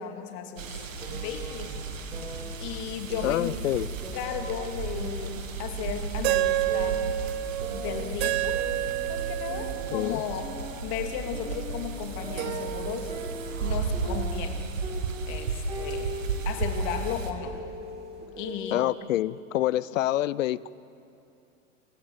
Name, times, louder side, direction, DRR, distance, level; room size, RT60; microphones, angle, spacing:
voice 1, 0.0-1.8 2.6-3.6 4.1-7.0 7.7-8.6 9.0-13.1 13.6-14.6 15.3-16.2 16.4-17.5 18.4-18.8, left 9 dB, 50° left, 4 dB, 2.9 m, -35 dB
sound 1, 0.6-17.3, right 4 dB, 85° right, 2.0 m, -34 dB
sound 2, 1.0-2.7 3.1-4.7 4.9-7.2 7.6-10.0 10.4-14.5 14.8-18.8, right 1 dB, 15° right, 7.1 m, -41 dB
voice 2, 3.2-3.9 9.9-10.2 18.7-20.7, left 14 dB, 80° left, 21 dB, 0.6 m, -27 dB
sound 3, 4.9-5.0 6.2-11.1 12.4-13.9, right 15 dB, 60° right, 0.8 m, -30 dB
27.5 x 15.5 x 7.5 m, 2.7 s
hypercardioid pair, 95°, 38 cm